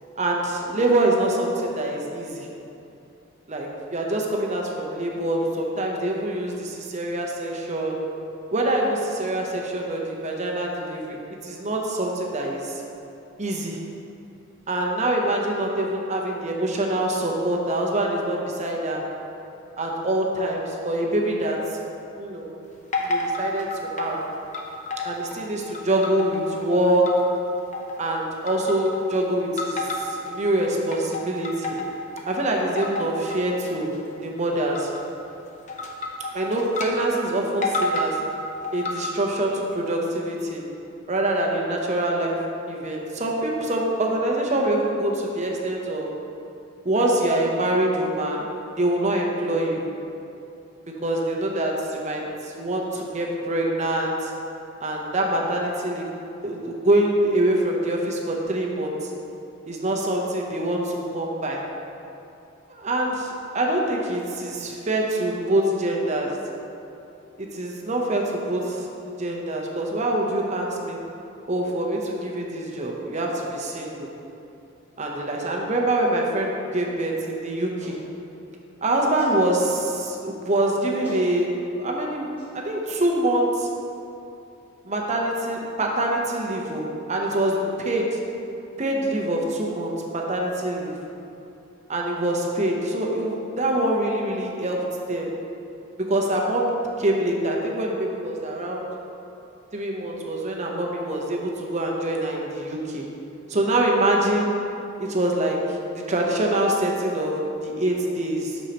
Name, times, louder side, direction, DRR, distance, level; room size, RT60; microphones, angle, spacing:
voice 1, 0.2-2.5 3.5-8.0 8.5-11.2 11.4-12.7 13.4-13.8 14.7-19.0 19.8-21.6 22.2-22.5 23.0-24.2 25.0-27.2 28.0-31.8 32.3-33.9 34.2-34.9 36.3-38.2 38.7-40.6 41.1-42.4 42.7-46.1 46.8-48.4 48.8-49.8 51.0-54.3 54.8-56.1 56.4-59.1 59.7-61.6 62.7-66.4 67.4-68.9 69.2-71.0 71.5-74.1 75.0-78.0 78.8-81.5 81.8-82.3 82.5-83.7 84.8-88.2 88.8-91.0 91.9-94.8 95.1-95.3 96.1-96.7 97.0-98.9 99.7-103.0 103.5-104.6 105.0-105.6 105.9-108.6, right 1 dB, 35° right, 0 dB, 0.7 m, -25 dB
sound 1, 22.9-24.2 24.5-25.4 25.7-27.4 27.7-28.1 28.5-29.1 29.6-30.3 30.7-32.3 32.8-33.3 33.7-34.0 34.8-35.1 35.7-36.9 37.2-37.3 37.6-38.1 38.6-39.3, left 2 dB, 35° left, 0.7 m, -29 dB
Clapping, 77.8-78.0 79.2-79.4 80.6-80.7 81.0-81.3 82.4-82.5, left 1 dB, 10° right, 1.7 m, -40 dB
8.2 x 6.3 x 2.9 m, 2.8 s
head